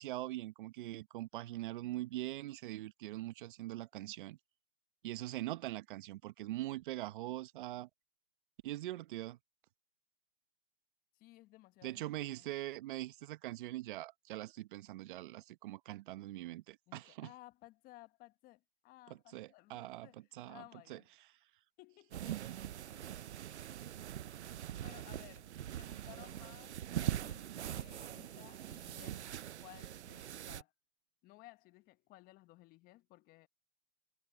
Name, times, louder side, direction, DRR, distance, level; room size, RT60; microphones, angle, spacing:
voice 1, 0.0-4.4 5.0-7.9 8.6-9.4 11.8-17.3 19.1-20.6 20.9-21.0 22.3-22.6 23.3-23.5, right 16 dB, 50° right, 1.2 m, -42 dB
voice 2, 11.1-12.5 16.9-21.1 21.8-23.1 24.8-25.5 25.8-26.8 27.1-30.7 31.2-33.5, left 18 dB, 25° left, 1.4 m, -59 dB
sound 1, 22.1-30.6, right 11 dB, 85° right, 0.6 m, -42 dB
hypercardioid pair, 130°, 33 cm